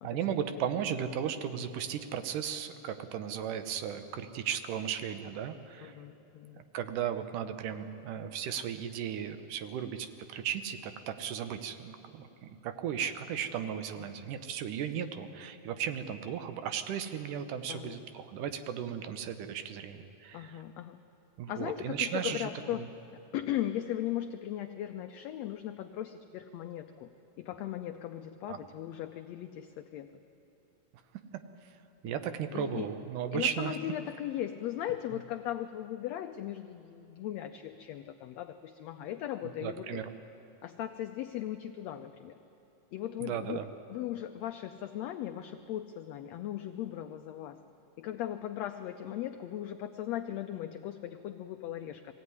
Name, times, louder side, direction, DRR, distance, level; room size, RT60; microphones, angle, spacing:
voice 1, 0.0-6.0 6.6-20.6 21.4-22.5 28.5-28.6 31.6-31.7 32.0-33.7 39.6-40.1 43.2-43.7, right 9 dB, 80° right, 9 dB, 2.5 m, -36 dB
voice 2, 5.8-6.6 14.0-14.1 17.7-18.1 20.3-21.0 21.5-22.9 23.1-27.1 27.4-30.1 32.0-32.9 33.3-40.0 40.6-42.4 42.9-43.6 43.9-47.6 48.0-52.1, left 12 dB, 85° left, 7 dB, 1.5 m, -38 dB
21.5 x 16.0 x 9.6 m, 3.0 s
omnidirectional pair, 3.7 m